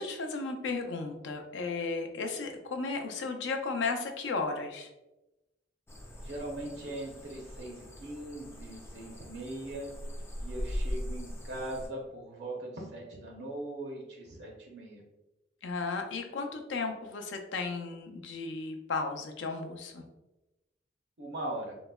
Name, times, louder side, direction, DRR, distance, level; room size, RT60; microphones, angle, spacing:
voice 1, 0.0-4.9 15.6-20.0, left 4 dB, 90° left, 4 dB, 0.4 m, -34 dB
sound 1, 5.9-11.9, equal, 15° left, 0.3 m, -40 dB
voice 2, 6.2-9.9 10.4-15.0 21.2-21.7, right 1 dB, 65° right, -1 dB, 0.6 m, -40 dB
3.8 x 2.1 x 2.2 m, 0.97 s
head